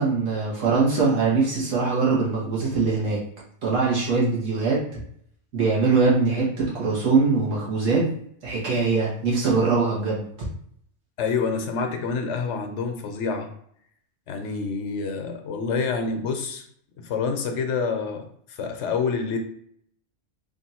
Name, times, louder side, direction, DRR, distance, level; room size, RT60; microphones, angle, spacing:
voice 1, 0.0-3.2 3.6-5.0 5.5-8.1 8.4-10.3, right 4 dB, 75° right, -6 dB, 1.7 m, -22 dB
voice 2, 11.2-13.5 14.3-16.7 17.0-19.4, left 5 dB, 70° left, 5 dB, 0.9 m, -27 dB
3.6 x 2.5 x 4.1 m, 0.65 s
omnidirectional pair, 1.3 m